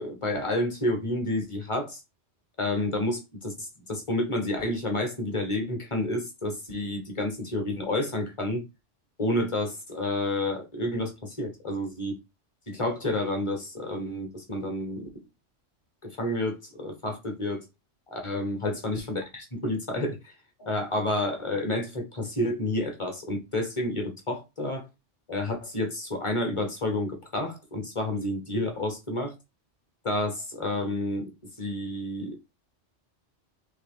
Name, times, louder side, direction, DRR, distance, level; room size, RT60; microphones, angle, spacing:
voice 1, 0.0-2.0 2.6-8.6 9.2-12.2 12.7-15.1 16.0-17.6 18.1-20.3 20.6-24.8 25.3-29.3 30.0-31.3 31.6-32.4, left 1 dB, 25° left, 1.1 m, -30 dB
3.9 x 3.1 x 3.6 m
omnidirectional pair, 1.2 m